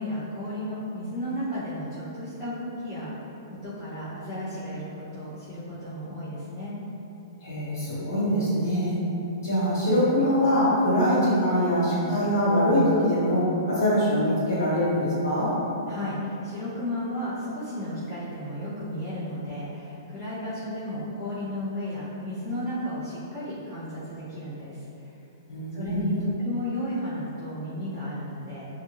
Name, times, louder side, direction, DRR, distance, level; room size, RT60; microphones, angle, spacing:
voice 1, 0.0-3.1 3.6-6.8 15.9-25.1 25.7-26.1 26.4-28.7, left 1 dB, 30° left, -18 dB, 1.2 m, -33 dB
voice 2, 7.4-9.0 9.4-15.5 25.5-26.3, equal, 60° left, -9 dB, 1.1 m, -23 dB
2.7 x 2.5 x 2.8 m, 2.9 s
hypercardioid pair, 170°, 2 cm